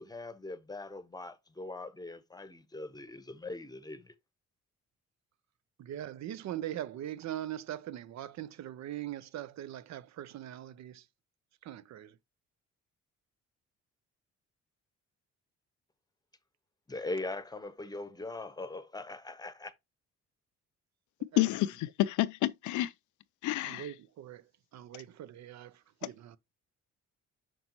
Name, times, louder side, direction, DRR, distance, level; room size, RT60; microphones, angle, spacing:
voice 1, 0.0-4.1 16.9-19.7, left 2 dB, 15° left, 0.9 m, -41 dB
voice 2, 5.8-11.0 11.6-12.2 21.3-21.4 23.6-24.4 24.7-26.4, right 12 dB, 65° right, 0.6 m, -41 dB
voice 3, 21.4-22.9 23.4-23.9, left 15 dB, 80° left, 0.5 m, -29 dB
6.0 x 5.3 x 2.9 m
cardioid pair, 90°, 30 cm